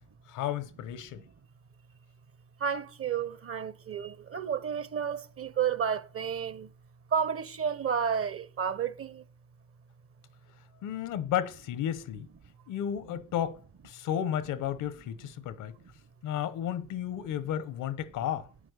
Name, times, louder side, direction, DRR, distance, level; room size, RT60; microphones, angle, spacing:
voice 1, 0.3-1.2 10.8-12.3 12.7-15.7 16.2-18.5, left 10 dB, 90° left, 1.1 m, -33 dB
voice 2, 2.6-6.7 7.1-9.2, right 7 dB, 50° right, 1.1 m, -31 dB
9.3 x 8.7 x 8.1 m
cardioid pair, 90°, 30 cm